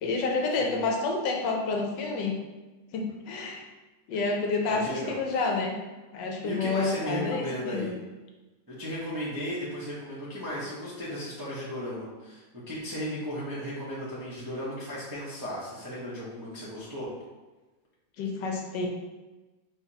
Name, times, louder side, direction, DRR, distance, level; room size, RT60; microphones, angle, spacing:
voice 1, 0.0-2.4 2.9-3.6 4.1-5.7 6.1-7.9 18.2-18.9, left 3 dB, 75° left, 1 dB, 1.3 m, -29 dB
voice 2, 4.7-5.2 6.4-7.9 8.7-17.1, equal, 25° right, -8 dB, 0.5 m, -35 dB
4.6 x 3.5 x 2.8 m, 1.2 s
omnidirectional pair, 2.0 m